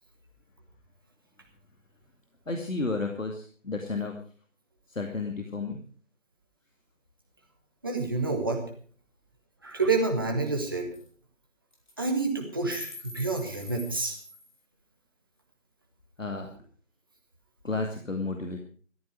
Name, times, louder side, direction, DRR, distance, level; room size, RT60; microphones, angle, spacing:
voice 1, 2.5-4.2 4.9-5.8 16.2-16.5 17.6-18.6, left 3 dB, 90° left, 3 dB, 2.5 m, -32 dB
voice 2, 7.8-8.6 9.6-10.9 12.0-14.2, right 3 dB, 15° right, 2 dB, 1.7 m, -28 dB
sound 1, 9.8-9.9 10.2-10.3 10.5-10.7 10.9-11.1 11.7-11.9 12.2-14.6, left 1 dB, 40° left, 3.7 m, -44 dB
16.0 x 13.5 x 4.8 m, 0.43 s
figure-of-eight pair, 170°, 38 cm